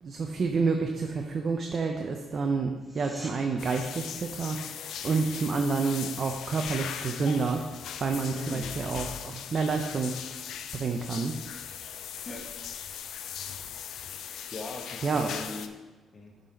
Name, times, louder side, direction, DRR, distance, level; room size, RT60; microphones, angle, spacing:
voice 1, 0.0-4.8 5.0-7.6 8.0-10.2 10.7-11.4 15.0-15.3, right 4 dB, 50° right, 4 dB, 0.6 m, -29 dB
sound 1, 2.8-3.4 14.7-14.8, equal, 5° right, 1.1 m, -45 dB
sound 2, 3.6-15.7, left 8 dB, 75° left, 0.4 m, -39 dB
voice 2, 8.3-8.7 12.2-12.5 14.5-15.8 16.1-16.3, left 3 dB, 35° left, 2 dB, 1.1 m, -39 dB
7.2 x 4.0 x 5.2 m, 1.3 s
cardioid pair, 90°, 0 cm